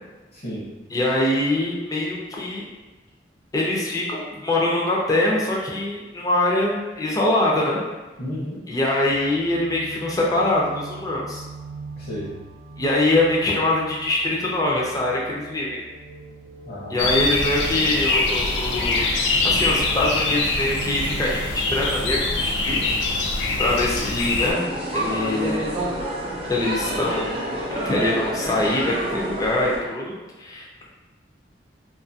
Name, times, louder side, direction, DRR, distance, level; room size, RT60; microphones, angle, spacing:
voice 1, 0.3-0.6 8.2-8.6 11.9-12.3 16.6-17.2, equal, 55° left, -9 dB, 0.8 m, -33 dB
voice 2, 0.9-2.6 3.5-7.8 8.7-11.4 12.8-15.8 16.9-19.0 19.4-22.8 23.6-24.7 24.9-25.6 26.5-27.4 27.7-30.7, left 1 dB, 20° left, -3 dB, 0.5 m, -23 dB
sound 1, 9.1-23.7, right 3 dB, 80° right, 0.4 m, -42 dB
sound 2, 17.0-24.5, left 3 dB, 85° left, 0.4 m, -23 dB
sound 3, 24.4-29.8, right 1 dB, 35° right, 0.6 m, -28 dB
2.6 x 2.4 x 2.6 m, 1.2 s
head